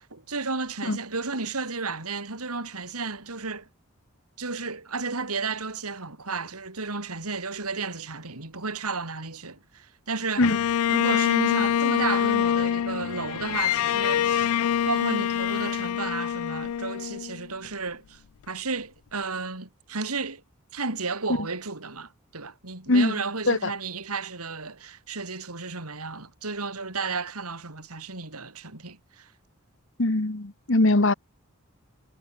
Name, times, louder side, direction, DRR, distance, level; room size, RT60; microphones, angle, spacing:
voice 1, 0.0-3.7 4.4-10.5 10.9-14.6 14.8-18.2 18.5-20.4 20.7-29.3, right 4 dB, 90° right, 3.6 m, -33 dB
Bowed string instrument, 10.4-17.7, left 9 dB, 80° left, 0.3 m, -25 dB
voice 2, 30.0-31.1, left 2 dB, 60° left, 1.3 m, -21 dB
head